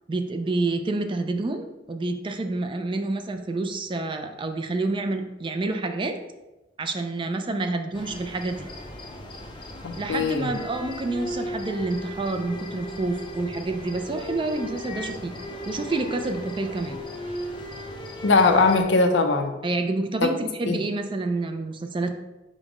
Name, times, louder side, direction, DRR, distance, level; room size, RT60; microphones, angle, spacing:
voice 1, 0.1-6.2 6.8-8.7 10.0-15.3 15.7-17.0 19.6-22.1, right 2 dB, 25° right, 6 dB, 0.3 m, -28 dB
sound 1, 7.9-18.8, equal, 25° left, 0.5 m, -36 dB
voice 2, 9.8-10.5 18.2-19.5 20.2-20.3 20.7-20.8, left 3 dB, 70° left, 5 dB, 0.5 m, -20 dB
5.1 x 2.1 x 4.8 m, 1.0 s
head